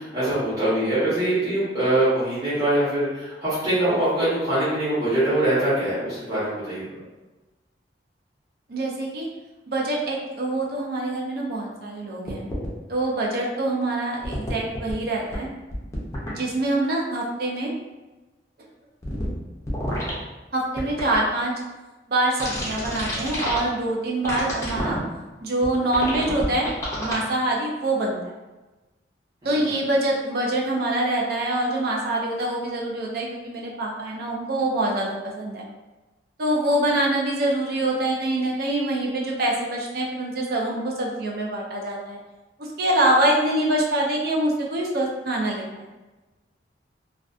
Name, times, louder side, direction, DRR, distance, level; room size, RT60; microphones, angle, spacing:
voice 1, 0.0-7.0 29.4-29.7, right 1 dB, 20° right, -14 dB, 0.9 m, -23 dB
voice 2, 8.7-9.3 9.7-12.5 12.9-15.5 16.3-17.7 20.5-21.5 22.1-25.0 25.4-28.4 29.4-35.6 36.4-42.2 42.6-45.9, right 1 dB, 60° right, -2 dB, 0.5 m, -25 dB
sound 1, 12.3-12.7 14.2-14.9 15.3-15.4 15.7-16.3 19.0-19.3 19.7-20.1 20.8-21.2 22.4-23.6 24.2-25.0 25.6-25.7 25.9-27.1, equal, 15° left, 0.5 m, -29 dB
2.3 x 2.3 x 2.4 m, 1.1 s
head